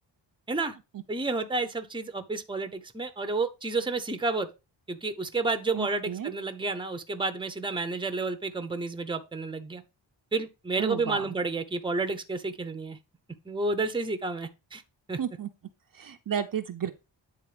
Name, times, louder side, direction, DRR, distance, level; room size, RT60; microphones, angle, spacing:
voice 1, 1.1-4.5 4.9-9.8 10.3-13.0 13.5-14.8 15.1-15.2, right 3 dB, 10° right, 0.8 m, -30 dB
voice 2, 5.7-6.3 10.8-11.3 15.2-15.5 16.0-16.9, right 8 dB, 50° right, 0.7 m, -32 dB
9.3 x 3.9 x 5.0 m
wide cardioid pair, 130°, 44 cm